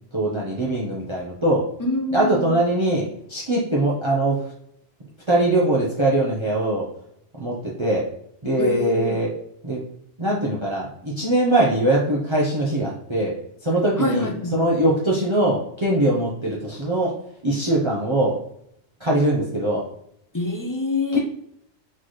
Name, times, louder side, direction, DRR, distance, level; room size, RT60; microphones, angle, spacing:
voice 1, 0.1-1.7 2.1-4.4 5.3-6.9 7.4-8.0 8.4-9.3 9.6-9.8 10.2-13.3 13.6-17.1 17.4-18.4 19.0-19.9 21.1-21.2, right 1 dB, 30° right, -5 dB, 0.8 m, -22 dB
voice 2, 1.8-2.6 8.6-9.2 14.0-14.6 20.3-21.2, left 2 dB, 20° left, 1 dB, 0.6 m, -25 dB
4.3 x 4.0 x 3.1 m, 0.72 s
omnidirectional pair, 1.2 m